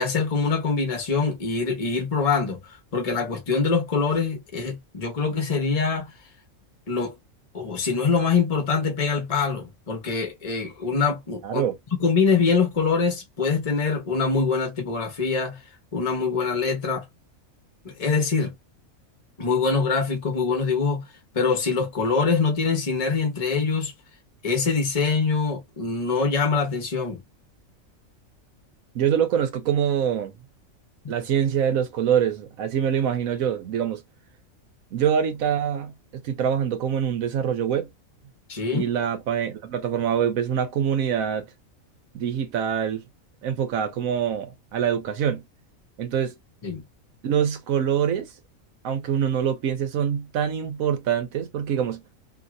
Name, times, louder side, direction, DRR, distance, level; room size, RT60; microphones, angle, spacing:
voice 1, 0.0-2.6 2.9-6.1 6.9-7.1 7.5-11.6 12.0-15.6 15.9-17.1 17.8-18.5 19.4-21.0 21.3-23.9 24.4-27.2 31.0-31.1 38.5-38.9 46.6-46.8, left 5 dB, 30° left, 1.0 m, -24 dB
voice 2, 11.4-11.7 28.9-30.3 31.1-34.0 34.9-35.9 36.2-37.9 38.7-41.5 42.1-43.0 43.4-45.4 46.0-46.4 47.2-48.3 48.8-52.0, right 8 dB, 80° right, 1.2 m, -24 dB
2.9 x 2.8 x 2.5 m
omnidirectional pair, 1.4 m